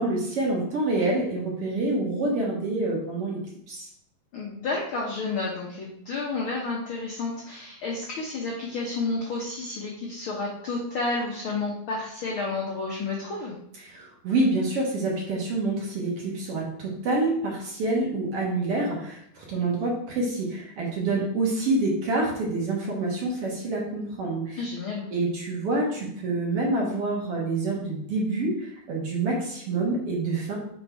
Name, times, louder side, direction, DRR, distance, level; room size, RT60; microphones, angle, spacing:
voice 1, 0.0-3.4 3.7-3.9 13.8-24.6 25.1-30.6, right 2 dB, 55° right, -3 dB, 1.9 m, -27 dB
voice 2, 4.3-13.6 24.6-25.1, left 3 dB, 85° left, -2 dB, 1.1 m, -31 dB
5.2 x 4.3 x 4.5 m, 0.71 s
omnidirectional pair, 3.7 m